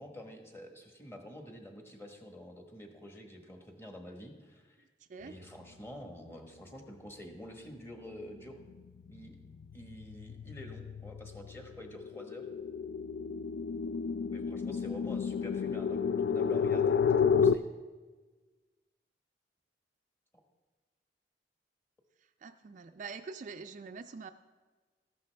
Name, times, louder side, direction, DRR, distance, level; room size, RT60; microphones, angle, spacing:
voice 1, 0.0-4.8 5.2-8.6 9.1-9.4 9.7-12.5 14.3-17.7, equal, 15° left, 3 dB, 1.3 m, -48 dB
sound 1, 7.9-8.2 8.6-17.5, left 6 dB, 65° left, 0.3 m, -31 dB
voice 2, 22.4-24.3, right 4 dB, 45° right, 8 dB, 0.4 m, -44 dB
14.0 x 11.0 x 3.3 m, 1.3 s
head